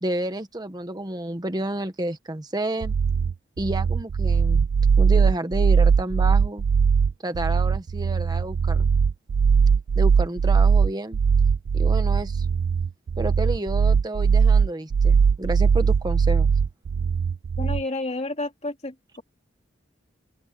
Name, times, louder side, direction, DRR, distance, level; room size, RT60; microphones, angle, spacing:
voice 1, 0.0-2.9 3.6-4.7 5.0-6.6 7.2-8.9 9.9-11.2 11.7-12.5 13.2-16.5, right 1 dB, 20° right, 1.1 m, -30 dB
sound 1, 2.8-17.8, right 6 dB, 65° right, 0.3 m, -20 dB
voice 2, 17.6-19.2, left 2 dB, 35° left, 2.8 m, -30 dB
open air
head